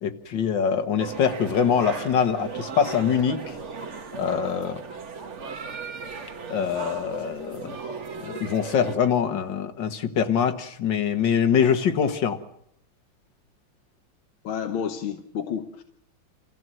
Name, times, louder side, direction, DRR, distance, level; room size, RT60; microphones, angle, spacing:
voice 1, 0.0-3.6 4.2-4.8 6.5-7.8 8.2-12.4, left 7 dB, 65° left, 9 dB, 2.1 m, -24 dB
sound 1, 1.0-9.0, right 5 dB, 40° right, 1.4 m, -36 dB
voice 2, 14.4-15.8, left 8 dB, 80° left, 6 dB, 1.9 m, -30 dB
27.5 x 15.5 x 7.7 m, 0.75 s
omnidirectional pair, 2.2 m